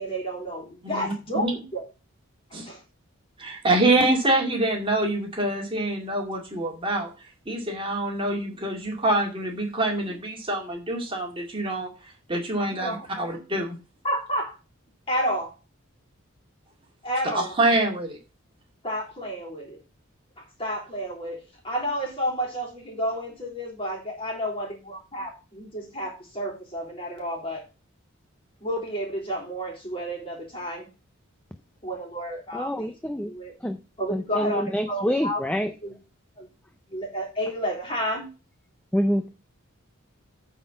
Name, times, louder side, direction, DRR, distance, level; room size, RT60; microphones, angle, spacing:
voice 1, 0.0-1.9 2.5-2.8 12.6-13.3 14.0-14.6 15.1-15.5 17.0-17.6 18.8-19.8 20.4-21.4 21.6-27.6 28.6-30.9 31.8-32.9 33.2-33.5 34.0-35.4 35.8-35.9 36.4-36.5 36.9-38.3, equal, 25° left, 0 dB, 3.5 m, -31 dB
voice 2, 0.8-1.5 2.5-2.7 3.4-7.1 7.5-13.8 17.3-18.2, right 2 dB, 25° right, 1 dB, 2.2 m, -26 dB
voice 3, 32.5-33.3 33.6-33.8 35.0-35.7 38.9-39.3, equal, 5° left, 7 dB, 0.5 m, -25 dB
9.0 x 4.3 x 7.0 m, 0.31 s
head